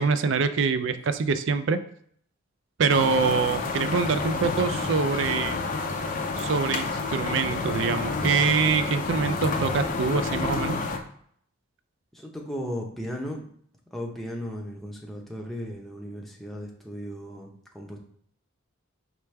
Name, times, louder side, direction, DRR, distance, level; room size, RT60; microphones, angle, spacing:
voice 1, 0.0-1.8 2.8-5.6 6.4-10.8, right 5 dB, 60° right, 11 dB, 0.4 m, -25 dB
sound 1, 2.9-11.0, left 3 dB, 40° left, 0.5 m, -29 dB
voice 2, 12.1-13.5 13.9-18.0, equal, ahead, -1 dB, 0.7 m, -36 dB
4.8 x 3.3 x 3.3 m, 0.63 s
head